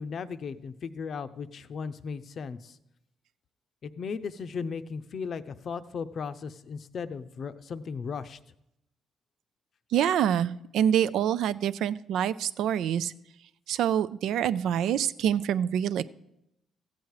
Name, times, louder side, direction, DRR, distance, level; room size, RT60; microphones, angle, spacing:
voice 1, 0.0-2.8 3.8-8.4, left 5 dB, 55° left, 12 dB, 0.6 m, -36 dB
voice 2, 9.9-13.1 13.7-16.0, right 9 dB, 80° right, 16 dB, 0.4 m, -26 dB
14.5 x 8.2 x 4.8 m, 0.83 s
cardioid pair, 90°, 0 cm